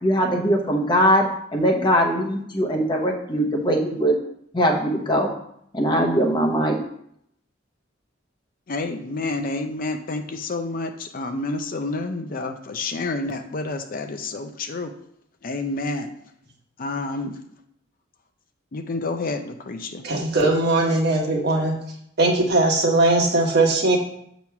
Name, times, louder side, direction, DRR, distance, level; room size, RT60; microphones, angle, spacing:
voice 1, 0.0-4.2 4.5-5.3 5.7-6.8, equal, 25° left, 1 dB, 0.9 m, -21 dB
voice 2, 8.7-14.9 15.4-16.1 16.8-17.4 18.7-20.0, left 2 dB, 45° left, 6 dB, 0.5 m, -29 dB
voice 3, 20.0-21.8 22.2-24.0, right 2 dB, 55° right, -1 dB, 1.3 m, -19 dB
7.0 x 3.1 x 5.8 m, 0.72 s
head